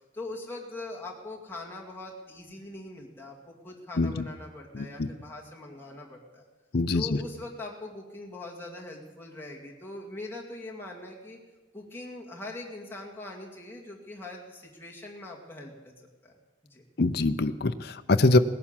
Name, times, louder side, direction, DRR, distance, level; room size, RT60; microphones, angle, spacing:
voice 1, 0.1-6.4 6.9-11.4 11.7-16.3 16.6-16.9, left 2 dB, 10° left, -2 dB, 2.2 m, -42 dB
voice 2, 4.7-5.1 6.7-7.2 17.0-18.4, left 2 dB, 55° left, 10 dB, 0.6 m, -24 dB
18.0 x 11.0 x 7.4 m, 1.2 s
head